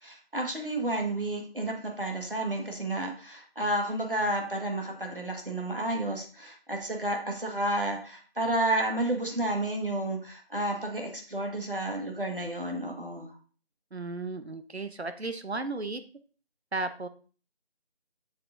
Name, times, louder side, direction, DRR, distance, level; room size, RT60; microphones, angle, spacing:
voice 1, 0.0-13.3, right 1 dB, 55° right, 2 dB, 1.7 m, -31 dB
voice 2, 13.9-16.0 16.7-17.1, right 3 dB, 80° right, 10 dB, 0.9 m, -34 dB
8.0 x 6.8 x 2.6 m, 0.39 s
figure-of-eight pair, 180°, 32 cm